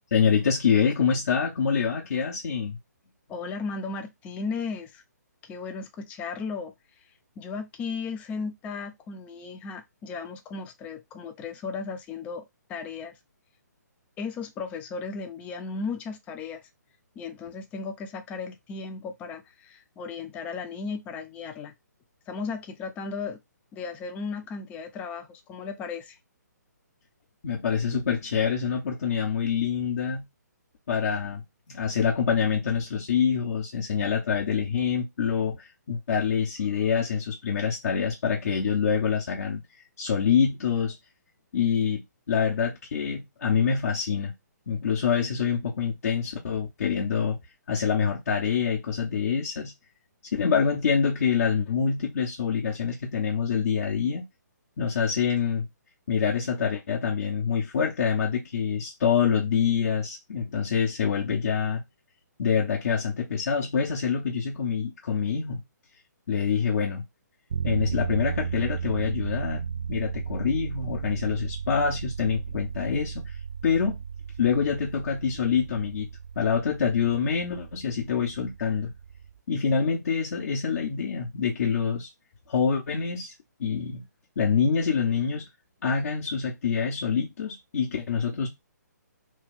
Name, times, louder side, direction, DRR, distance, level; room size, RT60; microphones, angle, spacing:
voice 1, 0.1-2.8 27.4-30.2 30.9-31.4 31.7-39.6 40.0-41.0 41.5-42.0 42.3-44.3 44.7-47.4 47.7-49.7 50.3-54.2 54.8-55.7 56.1-61.8 62.4-65.6 66.3-67.0 67.6-73.2 73.6-74.0 74.4-76.1 76.4-78.9 79.5-82.1 82.5-83.3 83.6-84.0 84.4-85.5 85.8-88.5, left 6 dB, 55° left, 1.0 m, -26 dB
voice 2, 3.3-5.0 5.4-6.7 7.4-12.4 12.7-13.2 14.2-16.6 17.2-21.7 22.3-23.4 23.7-26.2, left 4 dB, 15° left, 0.4 m, -35 dB
sound 1, 67.5-79.4, right 7 dB, 55° right, 0.4 m, -35 dB
3.2 x 2.3 x 3.5 m
figure-of-eight pair, 135°, 10 cm